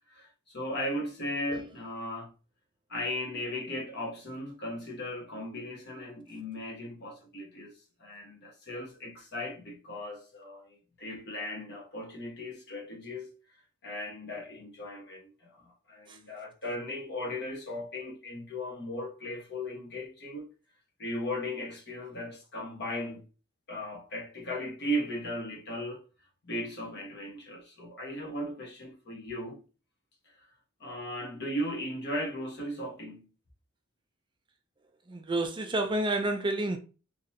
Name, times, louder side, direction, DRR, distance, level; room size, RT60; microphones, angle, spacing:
voice 1, 0.1-2.3 2.9-7.7 8.0-13.3 13.8-20.5 21.0-23.3 23.7-26.0 26.4-29.6 30.8-33.3, left 1 dB, 55° left, 1.4 m, -37 dB
voice 2, 35.1-36.8, right 2 dB, 25° right, 0.4 m, -29 dB
3.9 x 3.0 x 2.7 m
head